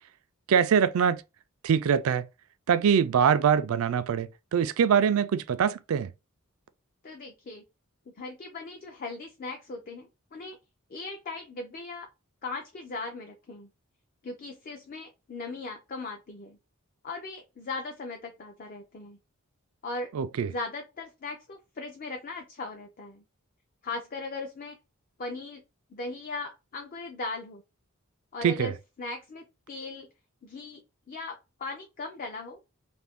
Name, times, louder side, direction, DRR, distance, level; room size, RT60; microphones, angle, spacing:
voice 1, 0.5-1.2 1.6-2.3 2.7-6.1 20.1-20.5 28.4-28.7, right 7 dB, 70° right, 0.3 m, -23 dB
voice 2, 7.0-7.6 8.1-10.6 10.9-12.1 12.4-13.7 14.2-16.6 17.0-19.2 19.8-20.1 20.5-23.2 23.8-24.8 25.2-25.6 25.9-27.6 28.3-30.1 30.4-32.6, left 3 dB, 40° left, 0.4 m, -38 dB
2.6 x 2.5 x 3.4 m
head